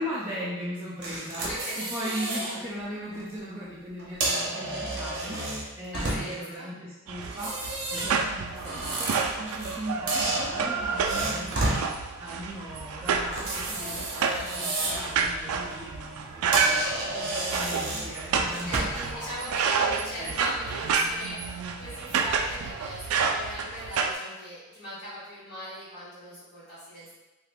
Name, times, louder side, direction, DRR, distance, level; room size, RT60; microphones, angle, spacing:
voice 1, 0.0-19.3 19.7-19.8 20.1-20.3 22.1-22.2, equal, 10° right, -10 dB, 0.4 m, -38 dB
sound 1, 1.0-2.6 3.0-3.2 4.0-6.5 7.2-9.8 10.1-11.8 13.3-15.1 15.5-15.7 16.2-16.3 16.5-19.1, right 2 dB, 55° right, 0.7 m, -31 dB
voice 2, 1.5-1.9 5.9-6.7 18.4-27.1, equal, 50° left, -13 dB, 1.5 m, -40 dB
sound 2, 7.1-24.1, right 5 dB, 85° right, 0.3 m, -29 dB
2.8 x 2.4 x 3.4 m, 1.1 s
head